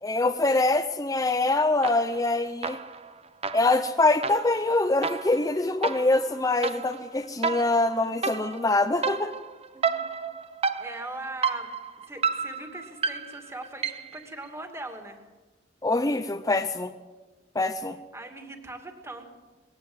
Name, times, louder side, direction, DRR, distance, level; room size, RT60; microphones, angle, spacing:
voice 1, 0.0-2.8 3.5-9.3 15.8-16.9 17.5-18.0, left 2 dB, 20° left, 6 dB, 0.7 m, -24 dB
sound 1, 1.8-2.3 2.6-14.2, right 5 dB, 35° right, 0.9 m, -32 dB
voice 2, 10.8-11.7 12.1-15.2 18.1-19.3, right 2 dB, 15° right, 5 dB, 2.5 m, -40 dB
20.5 x 17.0 x 7.8 m, 1.2 s
head